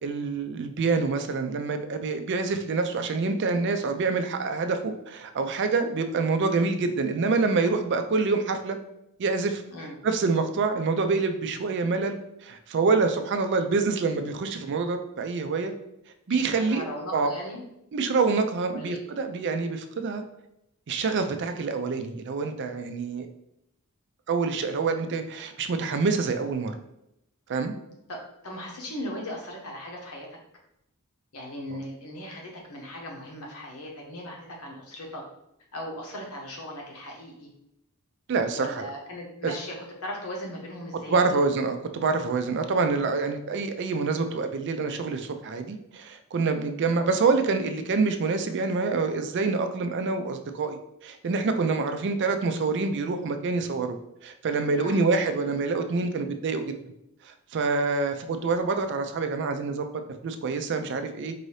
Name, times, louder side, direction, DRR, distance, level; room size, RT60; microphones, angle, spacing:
voice 1, 0.0-8.8 9.2-9.6 10.0-15.7 16.3-16.8 17.1-17.3 17.9-20.2 20.9-23.3 24.3-26.8 27.5-27.7 38.3-38.9 39.4-39.6 41.1-50.8 51.0-54.0 54.2-56.7 57.2-61.3, right 4 dB, 55° right, 7 dB, 0.4 m, -26 dB
voice 2, 16.3-17.6 18.7-19.0 28.1-28.2 28.4-30.3 31.3-35.2 35.7-37.5 38.5-41.4 54.8-55.0, left 1 dB, 75° left, 0 dB, 1.0 m, -38 dB
4.6 x 2.7 x 3.2 m, 0.81 s
head